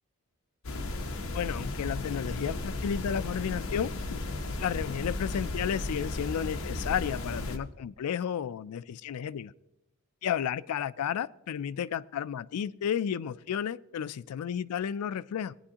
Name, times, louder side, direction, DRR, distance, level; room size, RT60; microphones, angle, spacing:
sound 1, 0.6-7.6, left 2 dB, 65° left, 0.9 m, -35 dB
voice 1, 1.3-4.2 4.6-9.5 10.2-15.5, left 8 dB, 90° left, 0.3 m, -32 dB
18.5 x 9.7 x 2.8 m
head